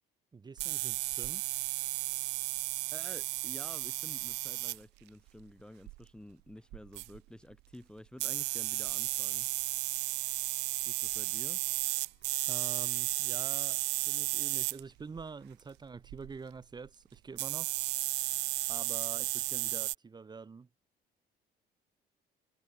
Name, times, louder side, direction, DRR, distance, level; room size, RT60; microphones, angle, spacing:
voice 1, 0.3-1.4 12.5-17.7 18.7-20.7, right 4 dB, 25° right, 1.7 m, -46 dB
sound 1, 0.6-4.8 5.9-6.0 6.7-7.2 8.2-15.2 16.0-16.4 16.9-17.0 17.4-19.9, right 22 dB, 85° right, 0.5 m, -34 dB
voice 2, 2.9-9.5 10.8-11.6, left 1 dB, 5° left, 1.4 m, -51 dB
sound 2, 11.0-15.6, left 14 dB, 70° left, 5.9 m, -74 dB
cardioid pair, 110°, 17 cm